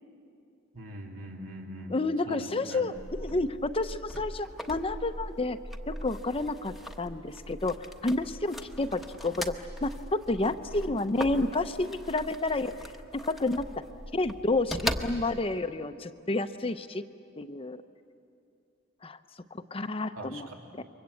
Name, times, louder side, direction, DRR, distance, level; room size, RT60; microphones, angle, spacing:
voice 1, 0.7-1.9 2.2-2.9 20.2-20.7, right 1 dB, 75° right, 1 dB, 3.0 m, -42 dB
voice 2, 1.9-2.9 3.2-5.6 5.9-12.7 13.1-13.7 14.1-17.0 17.4-17.8 19.0-19.2 19.5-20.5 20.8-20.9, left 2 dB, 25° left, 9 dB, 0.7 m, -30 dB
sound 1, 2.9-15.6, left 1 dB, ahead, 1.1 m, -40 dB
28.5 x 24.0 x 8.4 m, 2.5 s
head